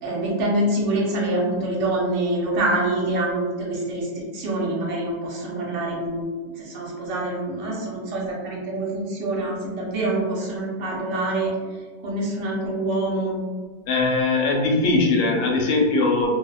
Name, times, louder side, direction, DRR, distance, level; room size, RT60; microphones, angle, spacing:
voice 1, 0.0-11.5 12.0-13.4, right 1 dB, 80° right, -4 dB, 1.3 m, -25 dB
voice 2, 13.9-16.3, left 3 dB, 80° left, 0 dB, 1.2 m, -20 dB
3.0 x 2.1 x 2.2 m, 1.5 s
omnidirectional pair, 1.9 m